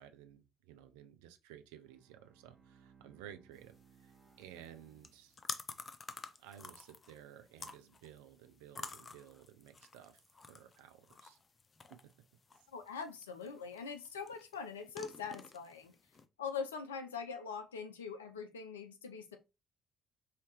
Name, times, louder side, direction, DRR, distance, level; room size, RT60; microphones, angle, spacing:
voice 1, 0.0-4.1 4.4-5.4 6.4-10.2 10.5-11.4 11.9-12.0, right 10 dB, 75° right, 0.5 m, -55 dB
Bowed string instrument, 1.7-5.8, right 6 dB, 35° right, 1.1 m, -65 dB
sound 1, 3.5-16.2, left 4 dB, 35° left, 0.5 m, -51 dB
voice 2, 12.7-15.9 16.4-19.4, left 6 dB, 85° left, 0.5 m, -43 dB
4.8 x 2.8 x 3.1 m
figure-of-eight pair, 50°, 0 cm